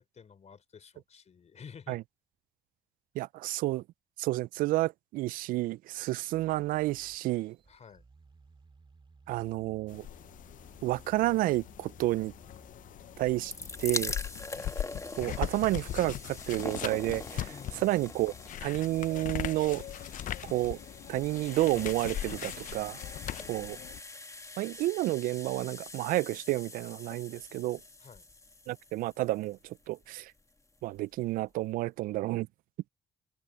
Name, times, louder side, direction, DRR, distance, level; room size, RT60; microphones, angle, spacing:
voice 1, 0.0-2.0 7.7-8.0 17.5-18.1 23.2-23.5 28.0-28.3, left 6 dB, 50° left, 4.1 m, -51 dB
voice 2, 3.2-3.8 4.2-7.6 9.3-10.1 10.8-12.3 13.2-13.5 13.8-14.1 15.2-17.5 17.8-18.3 18.6-19.8 20.5-20.8 21.1-23.0 23.5-23.8 24.6-27.8 28.7-30.3 30.8-32.5, right 17 dB, 80° right, 0.4 m, -30 dB
sound 1, 6.3-24.8, right 4 dB, 35° right, 2.8 m, -59 dB
sound 2, 9.9-24.0, left 11 dB, 70° left, 0.7 m, -40 dB
sound 3, 13.4-30.2 31.0-31.1 31.2-31.3, left 2 dB, 20° left, 2.0 m, -43 dB
supercardioid pair, 55°, 14 cm